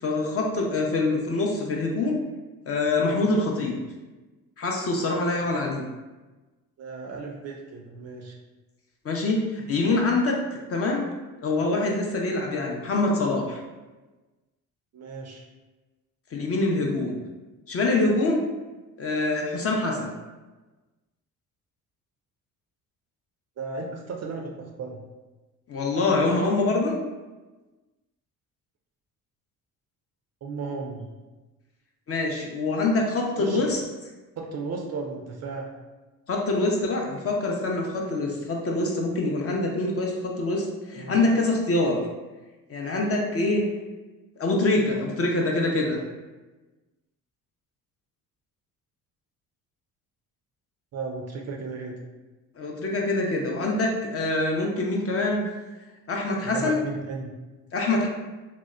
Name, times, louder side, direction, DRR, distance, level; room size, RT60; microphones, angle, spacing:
voice 1, 0.0-2.2 2.7-3.8 4.6-5.8 9.0-10.4 10.7-11.1 11.4-13.6 16.3-17.2 17.7-18.5 19.0-20.1 25.7-27.0 32.1-33.8 36.3-42.1 42.7-43.7 44.4-46.0 52.6-55.4 56.1-56.8 57.7-58.1, left 2 dB, 35° left, 0 dB, 0.5 m, -25 dB
voice 2, 6.8-8.3 14.9-15.4 23.6-25.1 26.0-26.2 30.4-31.1 33.4-33.6 34.4-35.7 40.9-41.2 50.9-52.0 56.4-57.3, right 4 dB, 35° right, 0 dB, 0.4 m, -35 dB
2.8 x 2.0 x 2.3 m, 1.2 s
hypercardioid pair, 50°, 45 cm